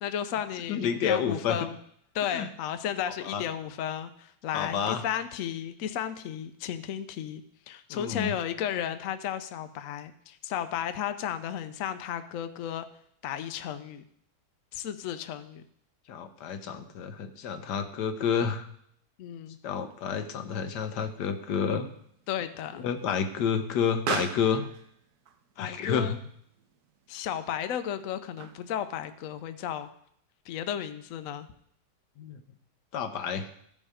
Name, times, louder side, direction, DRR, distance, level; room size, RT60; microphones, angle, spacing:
voice 1, 0.0-1.8 2.1-12.9 13.2-14.0 14.7-15.6 19.2-19.6 22.3-22.8 25.6-26.1 27.1-29.9 30.5-31.5, left 9 dB, 65° left, 10 dB, 0.9 m, -34 dB
voice 2, 0.7-1.6 2.3-2.5 3.2-3.4 4.5-5.0 7.9-8.3 16.1-18.7 19.6-21.9 22.7-24.6 25.6-26.2 32.2-32.4 32.9-33.5, left 7 dB, 85° left, 8 dB, 1.4 m, -29 dB
Explosion, 19.9-28.9, right 6 dB, 70° right, 1.3 m, -42 dB
14.0 x 5.4 x 4.9 m, 0.69 s
omnidirectional pair, 1.8 m